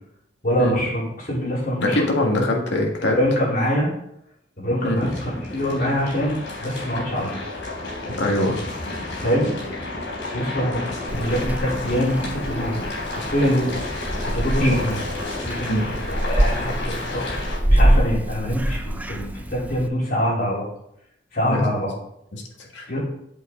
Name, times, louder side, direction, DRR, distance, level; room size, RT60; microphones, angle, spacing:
voice 1, 0.4-2.0 2.3-2.5 3.1-3.9 4.6-7.4 9.2-9.5 10.3-13.8 14.2-15.0 15.4-17.2 17.7-20.6 21.3-21.9 22.9-23.0, equal, 50° left, -6 dB, 4.0 m, -24 dB
voice 2, 1.8-3.2 4.8-5.1 8.2-8.6 10.8-10.9 14.6-14.8 15.7-15.8 21.5-21.6 22.3-23.0, left 1 dB, 65° left, 0 dB, 1.8 m, -23 dB
sound 1, 4.9-17.6, left 2 dB, 85° left, 3.6 m, -31 dB
Purr / Meow, 11.1-19.9, right 1 dB, 10° right, 0.4 m, -25 dB
8.0 x 7.6 x 3.8 m, 0.75 s
head